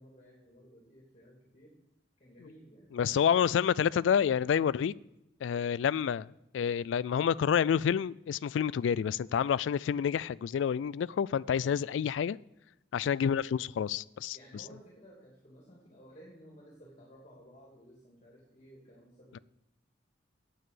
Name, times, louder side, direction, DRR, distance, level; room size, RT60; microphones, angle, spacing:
voice 1, 0.0-1.7 2.2-3.6 13.1-13.6 14.3-19.4, equal, 40° left, 2.8 m, -56 dB
voice 2, 2.9-4.9 5.4-6.3 6.5-12.4 12.9-14.4, left 8 dB, 85° left, 0.3 m, -28 dB
9.3 x 8.0 x 7.6 m
head